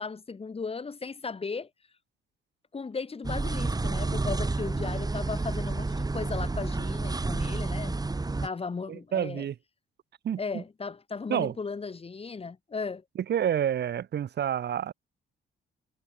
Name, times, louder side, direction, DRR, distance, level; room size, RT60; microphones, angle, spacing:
voice 1, 0.0-1.7 2.7-8.0 8.4-9.5 10.4-13.0, left 4 dB, 30° left, 2.1 m, -36 dB
sound 1, 3.2-8.5, right 3 dB, 20° right, 3.1 m, -30 dB
voice 2, 8.9-9.5 10.2-10.6 11.3-11.5 13.3-14.9, right 9 dB, 55° right, 1.6 m, -29 dB
cardioid pair, 90°, 20 cm